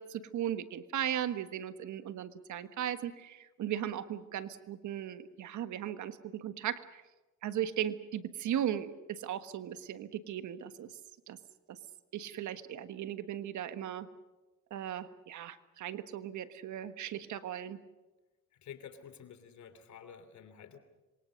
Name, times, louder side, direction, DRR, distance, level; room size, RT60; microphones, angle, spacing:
voice 1, 0.0-7.0 7.4-10.9 11.3-11.4 11.7-11.8 12.1-14.1 14.7-17.8, right 10 dB, 75° right, 11 dB, 1.5 m, -37 dB
voice 2, 18.6-20.8, left 8 dB, 70° left, 10 dB, 3.2 m, -50 dB
26.5 x 24.0 x 6.5 m, 1.1 s
cardioid pair, 90°, 30 cm